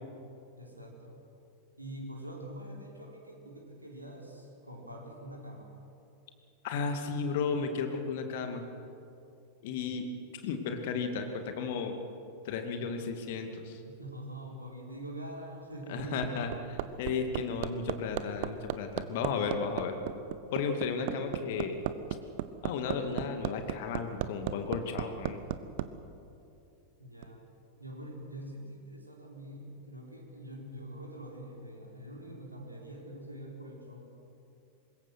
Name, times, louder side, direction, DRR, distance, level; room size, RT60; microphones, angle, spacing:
voice 1, 0.6-1.2 1.8-5.7 13.8-16.4 27.0-27.4 27.8-34.1, right 1 dB, 85° right, -1 dB, 4.3 m, -44 dB
voice 2, 6.6-8.6 9.6-10.1 10.4-11.3 11.6-11.9 12.4-13.8 15.9-16.5 17.0-19.9 20.5-21.8 22.6-25.4, left 5 dB, 50° left, 5 dB, 2.4 m, -34 dB
Hammer, 15.7-25.9 27.2-27.3, right 13 dB, 50° right, 1.0 m, -35 dB
25.0 x 21.0 x 6.2 m, 2.8 s
figure-of-eight pair, 90°, 0 cm